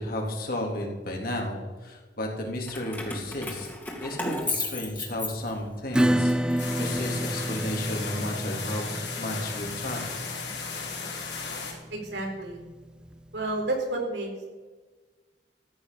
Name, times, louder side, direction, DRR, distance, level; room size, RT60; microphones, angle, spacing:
voice 1, 0.0-3.7 4.0-10.1, left 1 dB, 55° left, 0 dB, 3.5 m, -33 dB
Keys jangling, 2.7-5.8 6.3-7.6, left 2 dB, 10° left, 2.6 m, -34 dB
Acoustic guitar / Strum, 5.9-13.1, equal, 5° right, 0.5 m, -30 dB
sound 1, 6.6-11.7, left 5 dB, 80° left, 4.3 m, -35 dB
voice 2, 11.9-12.6 13.3-14.3, right 2 dB, 85° right, 1 dB, 4.2 m, -30 dB
15.0 x 10.0 x 7.0 m, 1.3 s
head